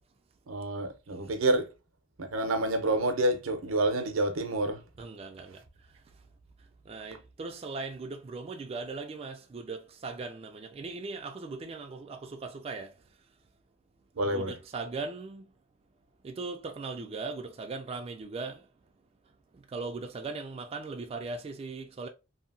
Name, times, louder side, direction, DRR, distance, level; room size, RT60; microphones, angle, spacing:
voice 1, 0.5-1.7 2.2-4.8 14.2-14.5, right 1 dB, 85° right, 0.6 m, -28 dB
voice 2, 5.0-6.2 6.6-13.1 14.2-15.5 16.2-18.7 19.5-22.1, right 3 dB, 30° right, 0.3 m, -39 dB
2.8 x 2.6 x 2.5 m
head